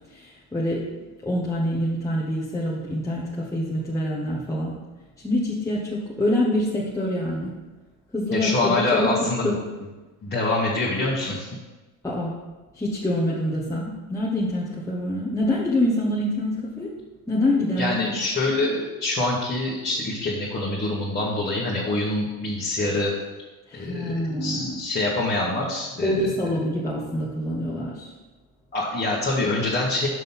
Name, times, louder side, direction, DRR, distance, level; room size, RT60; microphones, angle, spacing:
voice 1, 0.1-0.9 1.2-4.8 5.2-7.6 8.1-9.1 9.4-9.5 12.0-12.3 12.7-16.9 17.3-18.1 23.7-24.8 26.0-28.1, left 1 dB, 5° left, -6 dB, 1.2 m, -26 dB
voice 2, 8.3-9.5 10.2-11.5 17.7-23.1 23.7-26.4 28.7-30.1, left 2 dB, 25° left, -6 dB, 1.7 m, -25 dB
6.3 x 5.2 x 5.7 m, 1.2 s
supercardioid pair, 110°, 40 cm